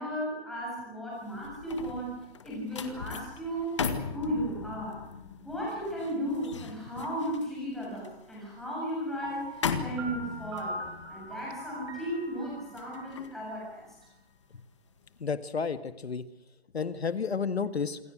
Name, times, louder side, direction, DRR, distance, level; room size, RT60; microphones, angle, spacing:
voice 1, 0.0-3.8 4.1-5.0 5.4-10.8 11.1-13.8, equal, ahead, -6 dB, 7.4 m, -35 dB
sound 1, 1.2-14.5 14.9-15.2, left 6 dB, 30° left, 1.8 m, -39 dB
Piano, 9.2-14.1, right 2 dB, 25° right, 6.6 m, -42 dB
voice 2, 15.2-16.2 16.7-18.0, left 5 dB, 80° left, 10 dB, 2.0 m, -31 dB
27.5 x 22.5 x 6.4 m, 0.92 s
hypercardioid pair, 180°, 32 cm